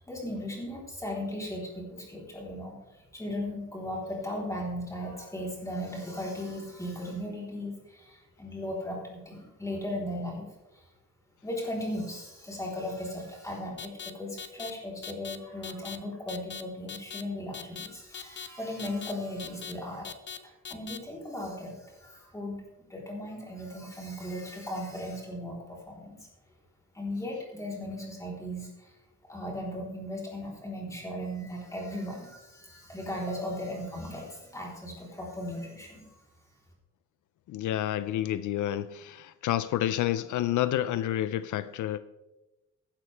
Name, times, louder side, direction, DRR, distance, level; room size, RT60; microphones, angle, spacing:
voice 1, 0.0-10.4 10.7-10.9 11.4-20.1 20.7-22.6 22.9-26.3 26.9-29.0 29.2-36.2, left 1 dB, 10° left, 3.7 m, -37 dB
sound 1, 13.8-14.1 14.4-14.7 15.0-15.4 15.6-16.0 16.3-16.6 16.9-17.2 17.5-17.9 18.1-18.5 18.8-19.1 19.4-19.7 20.0-20.4 20.6-21.0, left 7 dB, 35° left, 0.8 m, -40 dB
voice 2, 37.5-42.0, left 12 dB, 80° left, 0.5 m, -29 dB
15.0 x 11.5 x 3.4 m
wide cardioid pair, 165°, 30 cm